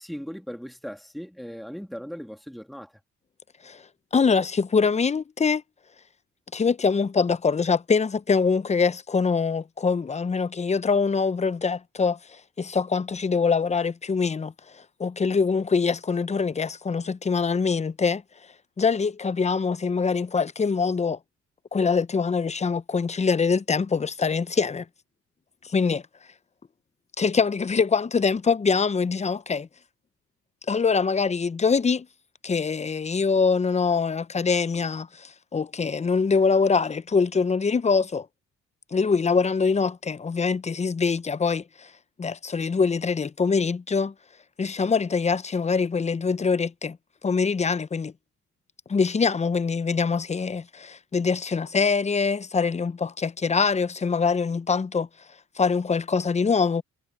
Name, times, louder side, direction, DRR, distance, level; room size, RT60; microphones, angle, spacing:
voice 1, 0.0-2.9, equal, ahead, 2.4 m, -38 dB
voice 2, 4.1-5.6 6.5-18.2 18.8-21.2 21.7-24.8 25.6-26.0 27.2-29.7 30.7-32.1 32.4-38.3 38.9-41.9 42.2-44.1 44.6-47.0 47.2-48.1 48.9-55.1 55.6-56.8, left 5 dB, 25° left, 0.6 m, -24 dB
cardioid pair, 90°, 30 cm